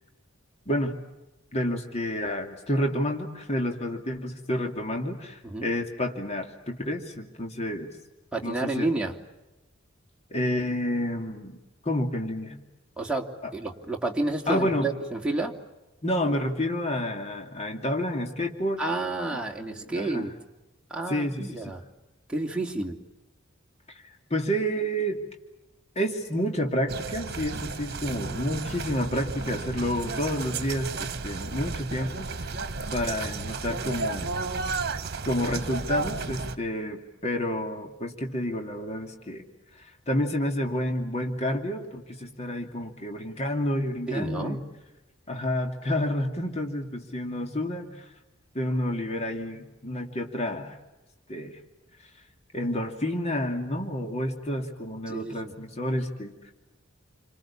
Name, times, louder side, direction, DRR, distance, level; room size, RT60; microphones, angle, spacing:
voice 1, 1.5-7.9 8.4-8.9 10.3-11.6 11.8-12.6 13.4-13.5 14.5-14.9 16.0-18.8 19.6-20.3 21.1-21.7 24.3-25.2 26.0-32.5 32.9-34.3 35.3-39.4 39.8-44.6 45.3-48.1 48.5-50.8 51.3-51.6 52.5-56.3, equal, 35° left, 3 dB, 2.7 m, -29 dB
voice 2, 8.3-9.2 13.0-15.5 18.8-20.3 20.9-21.8 22.3-23.0 44.1-44.6 55.1-55.5, right 2 dB, 5° right, -1 dB, 2.8 m, -30 dB
sound 1, 26.9-36.6, right 4 dB, 55° right, 1.5 m, -33 dB
30.0 x 26.0 x 7.2 m, 1.0 s
head